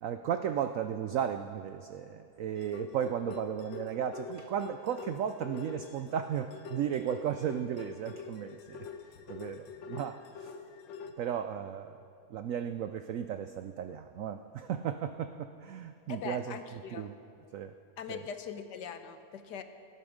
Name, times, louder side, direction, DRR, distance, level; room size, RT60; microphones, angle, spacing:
voice 1, 0.0-8.9 9.3-10.5 11.2-12.0 12.3-17.1 17.5-17.7 18.1-18.2, right 9 dB, 85° right, 9 dB, 0.7 m, -35 dB
sound 1, 2.6-11.1, left 6 dB, 85° left, 1.6 m, -45 dB
voice 2, 16.1-17.1 18.0-19.6, left 7 dB, 70° left, 9 dB, 1.3 m, -41 dB
17.5 x 14.0 x 5.1 m, 2.6 s
omnidirectional pair, 2.0 m